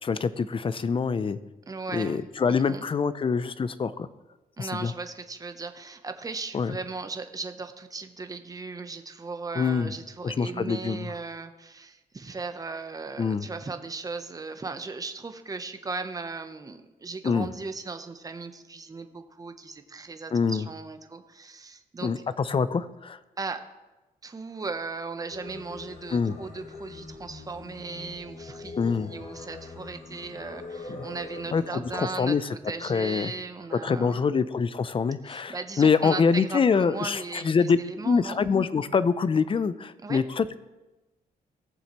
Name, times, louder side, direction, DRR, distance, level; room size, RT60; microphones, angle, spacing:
voice 1, 0.0-1.4 1.9-4.1 4.6-4.9 6.5-6.8 9.6-9.9 10.2-11.1 13.2-13.5 17.2-17.5 20.3-20.6 22.0-23.2 26.1-26.3 28.8-29.1 30.9-31.0 31.5-32.5 32.8-33.3 33.7-37.8 38.0-40.6, left 5 dB, 35° left, 15 dB, 0.5 m, -25 dB
voice 2, 1.7-2.8 4.6-22.1 23.4-23.6 24.2-32.4 32.7-34.2 35.2-38.4 40.0-40.2, right 4 dB, 20° right, 8 dB, 0.7 m, -37 dB
Singing, 25.3-32.0, left 3 dB, 50° left, 1.3 m, -42 dB
18.0 x 7.1 x 3.0 m, 1.1 s
cardioid pair, 110°, 16 cm